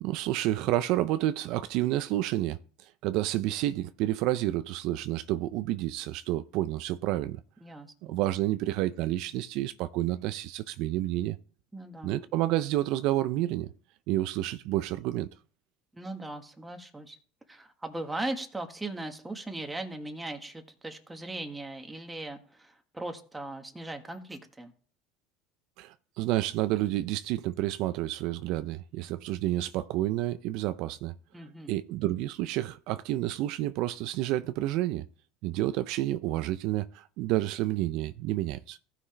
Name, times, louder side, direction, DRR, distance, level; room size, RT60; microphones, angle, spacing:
voice 1, 0.0-7.4 8.0-11.4 12.0-13.7 14.1-15.3 25.8-31.1 31.7-35.1 35.4-38.8, right 15 dB, 65° right, 0.4 m, -30 dB
voice 2, 7.6-8.2 11.7-12.2 15.9-17.2 17.5-24.7 31.3-31.8, right 2 dB, 10° right, 1.5 m, -39 dB
15.0 x 5.7 x 3.3 m
supercardioid pair, 120°, 0 cm